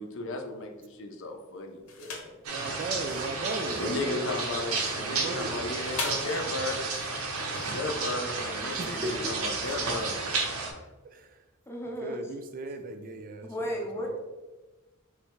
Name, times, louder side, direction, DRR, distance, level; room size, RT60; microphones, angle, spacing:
voice 1, 0.0-2.3 3.6-6.8 7.6-10.2, left 2 dB, 60° left, 4 dB, 0.5 m, -35 dB
sound 1, 1.9-2.4 2.9-10.7, left 4 dB, 80° left, 0.9 m, -43 dB
sound 2, 2.4-10.7, right 3 dB, 85° right, 0.8 m, -32 dB
voice 2, 2.5-4.4 4.9-5.7 6.2-6.3 8.8-9.1 11.1-11.3 12.0-13.5 13.7-13.9, right 2 dB, 40° right, 7 dB, 0.3 m, -37 dB
voice 3, 8.8-9.2 11.7-12.3 13.5-14.2, equal, 10° left, 0 dB, 0.6 m, -35 dB
3.3 x 3.2 x 4.6 m, 1.2 s
head